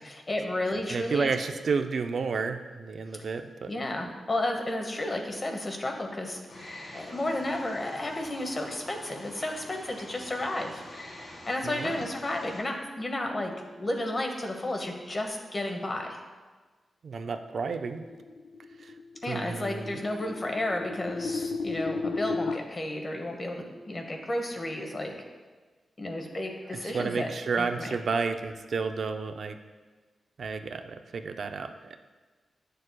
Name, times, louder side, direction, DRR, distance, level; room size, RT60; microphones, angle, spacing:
voice 1, 0.0-1.3 3.1-3.2 3.7-6.4 6.9-10.8 11.5-16.2 19.2-25.1 26.0-27.3 27.6-28.0, left 1 dB, 30° left, 3 dB, 0.9 m, -32 dB
voice 2, 0.9-3.7 11.6-12.0 17.0-18.0 18.8-18.9 19.3-20.0 26.7-29.6 30.4-32.0, right 5 dB, 65° right, 7 dB, 0.4 m, -31 dB
Wild animals, 6.5-12.6, left 1 dB, 60° left, 1.7 m, -46 dB
sound 1, 17.8-22.6, left 3 dB, 90° left, 0.3 m, -34 dB
9.7 x 6.5 x 2.2 m, 1.3 s
wide cardioid pair, 100°, 0 cm